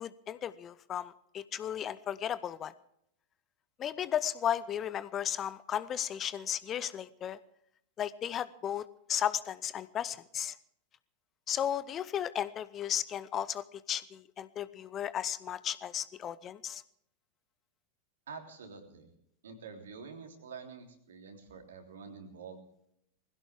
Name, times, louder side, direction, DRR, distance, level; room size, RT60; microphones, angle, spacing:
voice 1, 0.0-2.7 3.8-7.4 8.0-10.6 11.5-16.8, left 10 dB, 30° left, 17 dB, 0.7 m, -35 dB
voice 2, 18.3-19.1 19.4-22.6, right 5 dB, 65° right, 4 dB, 3.3 m, -47 dB
21.0 x 16.5 x 3.6 m, 0.73 s
figure-of-eight pair, 90°, 0 cm